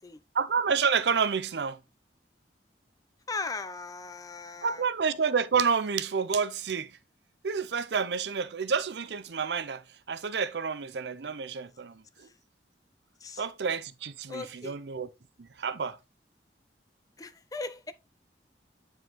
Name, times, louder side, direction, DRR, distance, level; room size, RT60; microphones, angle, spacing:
voice 1, 0.3-1.8 4.6-6.9 7.4-9.8 10.1-12.0 13.4-15.1 15.6-16.0, right 6 dB, 70° right, 0.6 m, -29 dB
voice 2, 3.3-4.8 12.2-12.3 13.2-13.5 14.3-14.8 17.2-17.9, left 3 dB, 20° left, 0.4 m, -38 dB
9.1 x 4.5 x 3.0 m
head